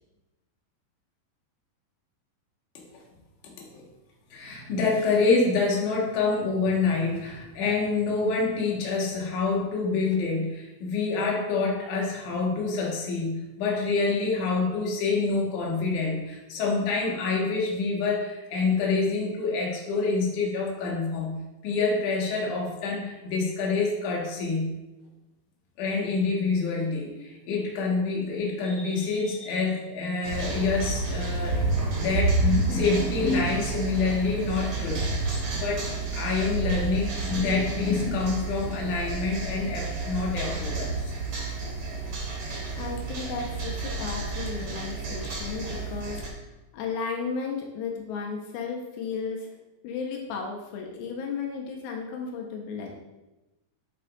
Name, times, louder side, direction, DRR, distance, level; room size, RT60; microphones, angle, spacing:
voice 1, 3.4-3.8 4.3-21.3 21.6-24.7 25.8-31.7 31.9-35.0 35.5-41.1, left 4 dB, 65° left, -2 dB, 2.7 m, -27 dB
sound 1, 30.2-46.3, right 4 dB, 45° right, 2.0 m, -33 dB
Thunder, 30.8-33.1 33.4-38.2 39.3-41.9, right 2 dB, 85° right, 1.1 m, -31 dB
voice 2, 42.8-46.2 46.7-49.5 49.8-53.0, left 5 dB, 90° left, 1 dB, 2.8 m, -34 dB
9.0 x 7.9 x 2.5 m, 1.0 s
omnidirectional pair, 4.2 m